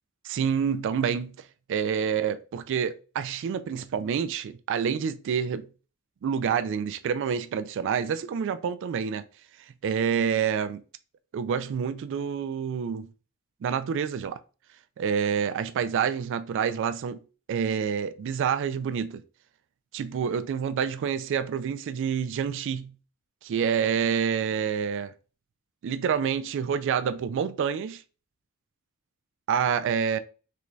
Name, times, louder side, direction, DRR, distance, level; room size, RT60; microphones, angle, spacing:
voice 1, 0.2-1.4 1.7-5.7 6.2-9.2 9.8-10.8 11.3-13.1 13.6-14.4 15.0-17.2 17.5-19.2 19.9-22.9 23.4-25.1 25.8-28.0 29.5-30.2, right 7 dB, 60° right, 0.3 m, -27 dB
3.4 x 2.6 x 3.1 m
head